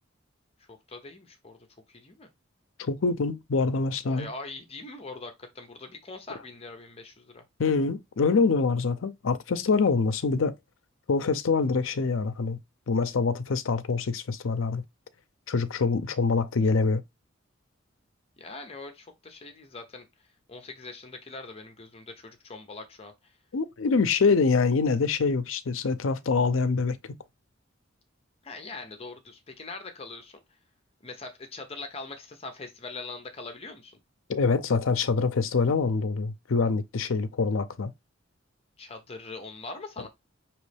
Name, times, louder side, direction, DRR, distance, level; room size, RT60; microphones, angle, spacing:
voice 1, 0.7-1.6 1.9-2.3 4.0-7.4 18.4-20.1 20.5-23.3 28.4-30.4 31.0-34.0 38.8-40.1, left 3 dB, 30° left, 0.7 m, -42 dB
voice 2, 2.8-4.3 7.6-10.5 11.1-12.6 12.9-14.8 15.5-17.0 23.5-27.0 34.3-37.9, left 4 dB, 80° left, 0.5 m, -25 dB
5.3 x 3.0 x 3.3 m
head